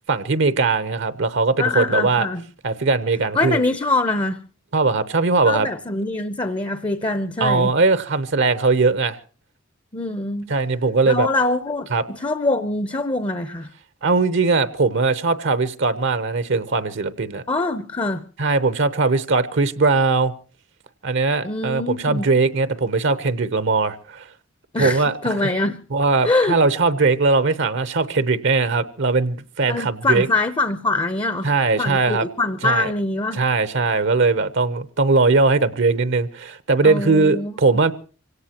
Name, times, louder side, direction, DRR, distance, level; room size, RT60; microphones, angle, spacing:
voice 1, 0.1-2.3 2.6-3.6 4.7-5.7 7.4-9.2 10.5-11.3 11.9-12.0 14.0-17.4 18.4-20.3 21.0-24.3 24.8-25.4 25.9-30.3 31.4-32.3 32.6-32.9 33.3-37.9, right 3 dB, 60° right, 0.8 m, -20 dB
voice 2, 1.6-2.4 3.3-4.4 5.5-7.7 9.9-10.5 11.1-13.7 17.5-18.2 21.4-22.3 24.7-25.8 26.2-26.6 29.7-31.5 31.8-33.4 36.8-37.8, left 2 dB, 25° left, 0.7 m, -23 dB
25.0 x 17.5 x 2.9 m
head